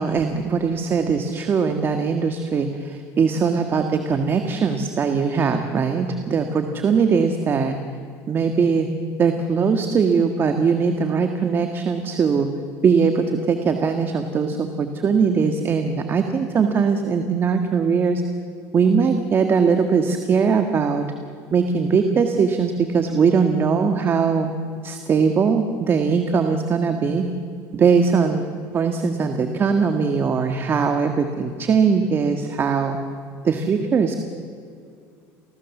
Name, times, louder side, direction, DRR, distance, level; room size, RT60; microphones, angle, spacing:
voice 1, 0.0-7.8 8.3-8.9 9.2-12.5 12.8-18.2 18.7-21.1 21.5-24.5 24.8-27.3 27.7-28.5 28.7-33.0 33.4-34.2, right 5 dB, 35° right, 6 dB, 1.7 m, -20 dB
29.0 x 20.0 x 7.3 m, 2.3 s
cardioid pair, 125°, 7 cm